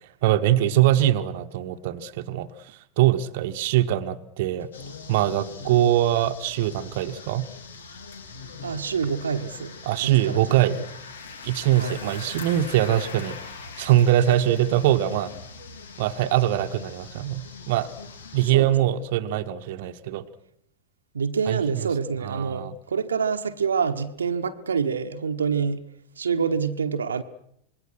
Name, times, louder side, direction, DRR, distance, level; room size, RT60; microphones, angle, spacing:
voice 1, 0.2-4.7 5.1-7.5 9.9-10.9 11.4-13.4 13.8-15.3 16.0-17.9 18.3-20.2 21.5-21.6 22.2-22.7, right 13 dB, 50° right, 1.2 m, -22 dB
sound 1, 4.7-18.5, left 4 dB, 65° left, 2.8 m, -41 dB
voice 2, 8.6-9.8 10.0-10.7 11.8-12.0 18.4-19.0 21.1-25.9 26.2-27.2, right 6 dB, 70° right, 1.2 m, -27 dB
26.5 x 22.0 x 6.3 m
figure-of-eight pair, 90°, 0 cm